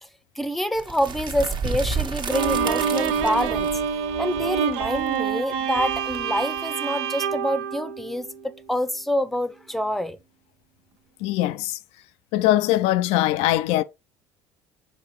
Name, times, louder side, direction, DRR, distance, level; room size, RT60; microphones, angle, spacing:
voice 1, 0.4-3.7 4.2-8.3 8.7-10.2, equal, ahead, 0.7 m, -26 dB
sound 1, 0.8-6.6, right 4 dB, 40° right, 1.3 m, -32 dB
Bowed string instrument, 2.3-8.6, right 7 dB, 75° right, 0.8 m, -27 dB
voice 2, 11.2-11.8 12.3-13.8, left 15 dB, 70° left, 0.4 m, -21 dB
6.2 x 4.9 x 3.1 m
hypercardioid pair, 75°, 12 cm